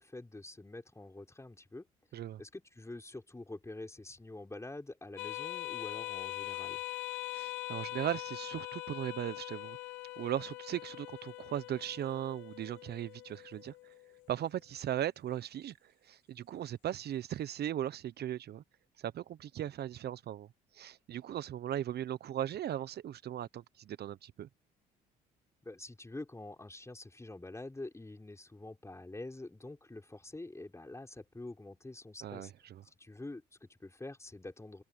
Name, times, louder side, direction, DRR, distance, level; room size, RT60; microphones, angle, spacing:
voice 1, 0.0-1.9 2.4-6.8 25.6-32.5 32.8-34.8, left 2 dB, 15° left, 4.9 m, -46 dB
sound 1, 5.2-14.1, left 17 dB, 75° left, 2.4 m, -42 dB
voice 2, 7.3-9.8 10.2-13.9 14.3-18.6 19.0-20.5 20.7-24.5 32.2-32.8, right 11 dB, 60° right, 1.1 m, -38 dB
open air
hypercardioid pair, 60°, 19 cm